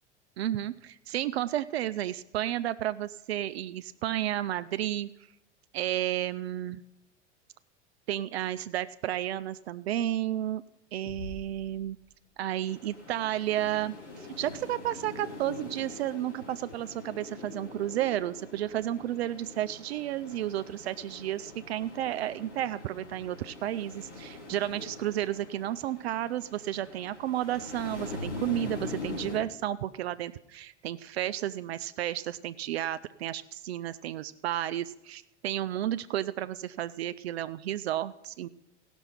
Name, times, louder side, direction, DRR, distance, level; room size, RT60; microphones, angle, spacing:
voice 1, 0.4-5.1 5.7-6.8 8.1-10.6 10.9-12.0 12.4-38.5, right 12 dB, 60° right, 13 dB, 0.5 m, -32 dB
sound 1, 11.1-12.8, left 2 dB, 55° left, 1.5 m, -46 dB
sound 2, 12.7-29.4, left 2 dB, 85° left, 3.2 m, -43 dB
16.5 x 6.1 x 5.7 m, 0.86 s
figure-of-eight pair, 80°, 35 cm